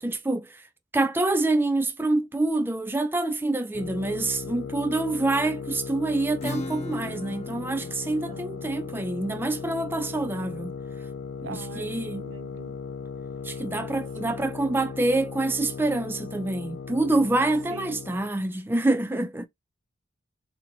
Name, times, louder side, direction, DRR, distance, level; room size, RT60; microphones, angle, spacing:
voice 1, 0.0-0.6 0.9-10.7 11.4-12.3 13.4-19.5, right 2 dB, 10° right, 0.4 m, -26 dB
sound 1, 3.7-18.3, left 5 dB, 85° left, 0.5 m, -37 dB
Acoustic guitar / Strum, 6.4-11.8, left 1 dB, 30° left, 0.6 m, -40 dB
voice 2, 8.3-8.8 11.4-12.8 14.2-14.4 17.7-18.0, right 3 dB, 80° right, 0.7 m, -43 dB
4.2 x 2.9 x 2.6 m
head